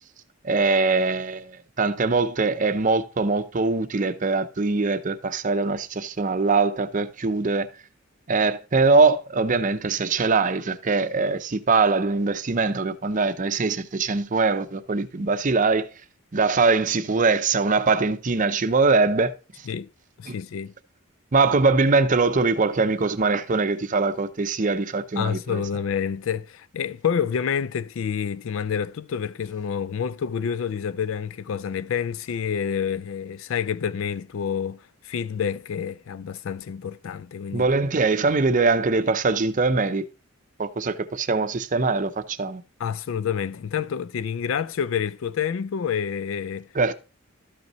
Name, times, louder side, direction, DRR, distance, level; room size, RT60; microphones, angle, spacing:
voice 1, 0.4-7.7 8.3-15.9 16.3-19.3 20.3-20.4 21.3-25.6 37.5-40.1 40.6-42.6 46.7-46.9, right 4 dB, 40° right, 0.6 m, -22 dB
voice 2, 20.2-20.7 25.2-37.6 42.8-46.7, left 7 dB, 70° left, 0.4 m, -28 dB
12.5 x 5.4 x 3.0 m
head